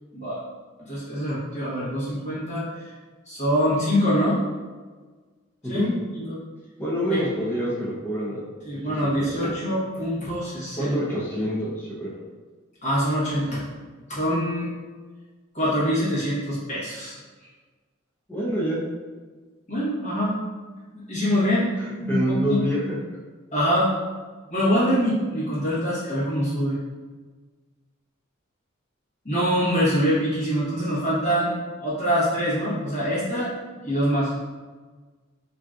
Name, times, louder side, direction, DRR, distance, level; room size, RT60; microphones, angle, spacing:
voice 1, 0.9-2.9 3.3-4.4 5.7-5.8 6.1-6.4 7.1-7.2 8.7-11.0 12.8-13.6 14.1-14.7 15.5-17.1 19.7-20.4 20.9-21.7 22.0-22.6 23.5-23.9 24.5-26.8 29.2-33.5 33.8-34.3, equal, 35° left, -9 dB, 1.1 m, -24 dB
voice 2, 6.8-8.5 8.7-9.6 10.8-12.2 18.3-18.8 21.8-23.0, equal, 10° left, -7 dB, 0.5 m, -27 dB
3.7 x 2.6 x 2.4 m, 1.4 s
head